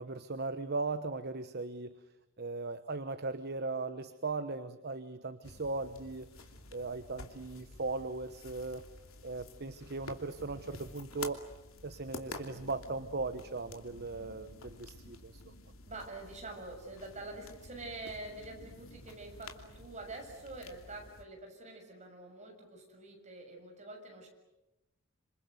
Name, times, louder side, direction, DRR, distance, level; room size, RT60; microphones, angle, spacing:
voice 1, 0.0-2.0 2.4-8.8 9.2-11.4 11.8-15.5, right 3 dB, 50° right, 11 dB, 1.1 m, -38 dB
sound 1, 5.4-21.2, left 3 dB, 85° left, 2.9 m, -50 dB
voice 2, 15.9-24.3, right 2 dB, 35° right, 2 dB, 6.9 m, -46 dB
27.5 x 27.0 x 8.0 m, 0.94 s
head